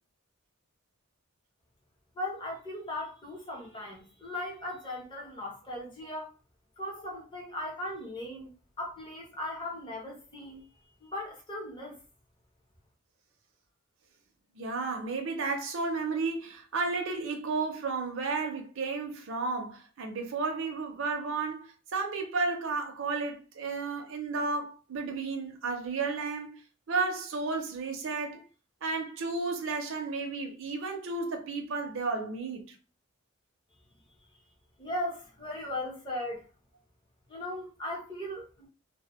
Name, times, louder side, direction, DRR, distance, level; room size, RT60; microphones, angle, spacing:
voice 1, 2.2-6.3 6.8-10.6 11.0-12.0 34.8-36.4 37.3-38.7, left 1 dB, 20° left, 0.7 m, -38 dB
voice 2, 14.5-26.6 26.9-28.4 28.8-32.8, right 4 dB, 65° right, 0.5 m, -33 dB
2.1 x 2.0 x 2.9 m
head